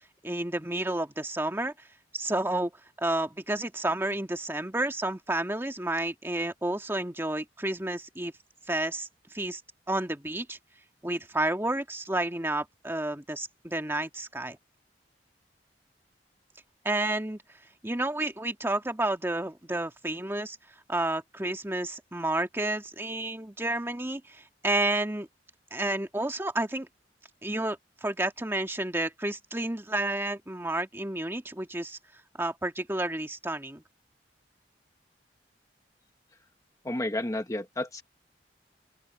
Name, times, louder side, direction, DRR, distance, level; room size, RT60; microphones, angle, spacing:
voice 1, 0.2-1.7 2.1-2.7 3.0-8.3 8.7-9.1 9.3-9.6 9.9-10.6 11.0-14.6 16.8-17.4 17.8-20.6 20.9-25.3 25.7-26.9 27.4-32.0 32.4-33.8, right 1 dB, 15° right, 1.8 m, -30 dB
voice 2, 36.8-38.0, left 1 dB, 20° left, 1.2 m, -31 dB
open air
head